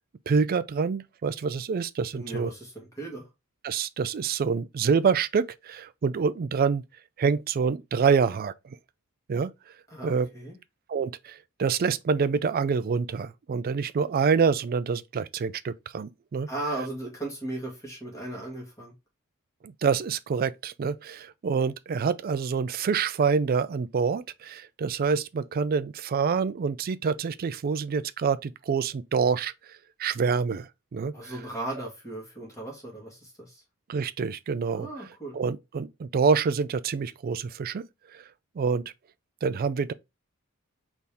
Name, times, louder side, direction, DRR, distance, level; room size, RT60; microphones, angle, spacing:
voice 1, 0.3-2.5 3.6-6.8 7.2-8.8 9.3-9.5 10.0-10.3 10.9-16.5 19.6-31.3 33.9-34.9 35.3-37.9 38.1-38.2 38.6-38.8 39.4-39.9, right 5 dB, 45° right, 0.3 m, -26 dB
voice 2, 2.1-3.3 9.9-10.6 16.5-18.9 31.1-33.6 34.7-35.4, right 2 dB, 15° left, 2.0 m, -37 dB
4.2 x 3.5 x 3.5 m
head